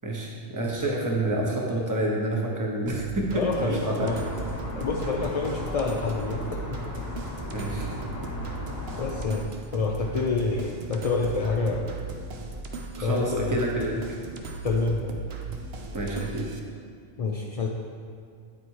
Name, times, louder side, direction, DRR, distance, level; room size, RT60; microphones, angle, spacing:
voice 1, 0.0-4.3 7.5-7.9 12.9-13.9 15.9-16.4, right 1 dB, 20° right, -2 dB, 0.9 m, -28 dB
sound 1, 2.9-16.6, right 3 dB, 65° right, 0.9 m, -38 dB
voice 2, 3.3-4.3 4.8-6.9 9.0-12.0 13.0-13.6 14.6-15.2 17.2-17.7, left 3 dB, 55° left, -1 dB, 0.4 m, -28 dB
sound 2, 4.0-9.3, left 1 dB, 15° left, 0.8 m, -36 dB
9.5 x 4.2 x 4.7 m, 2.2 s
omnidirectional pair, 1.2 m